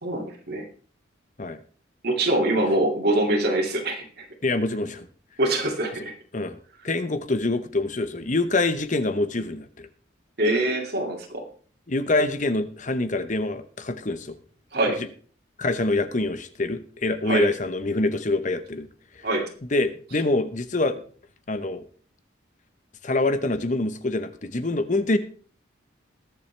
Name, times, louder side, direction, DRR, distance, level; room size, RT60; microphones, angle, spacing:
voice 1, 0.0-0.7 2.0-4.3 5.4-6.1 10.4-11.4 14.7-15.0 17.3-17.5 19.2-19.5, right 1 dB, 55° right, 1 dB, 2.4 m, -24 dB
voice 2, 4.4-5.1 6.3-6.6 6.8-9.9 11.9-14.4 15.6-18.9 19.2-19.3 19.7-21.0 21.5-21.9 23.0-25.2, left 2 dB, 40° left, 11 dB, 0.9 m, -25 dB
21.0 x 7.3 x 3.3 m, 0.43 s
head